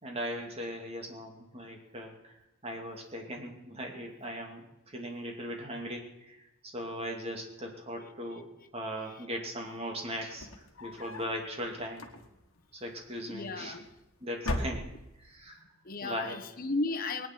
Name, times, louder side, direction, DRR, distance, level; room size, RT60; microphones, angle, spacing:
voice 1, 0.0-2.3 2.6-6.4 6.6-8.5 8.7-12.1 12.7-13.8 14.2-14.8 15.2-15.6 16.0-16.4, equal, 30° right, 2 dB, 2.4 m, -39 dB
voice 2, 7.9-8.7 9.0-9.3 13.3-13.8 15.8-17.3, left 3 dB, 40° left, 5 dB, 1.1 m, -36 dB
sound 1, 10.2-11.4 11.9-12.6 13.5-14.0 14.4-15.3, left 1 dB, 75° left, 1.5 m, -37 dB
20.5 x 9.5 x 6.1 m, 0.93 s
head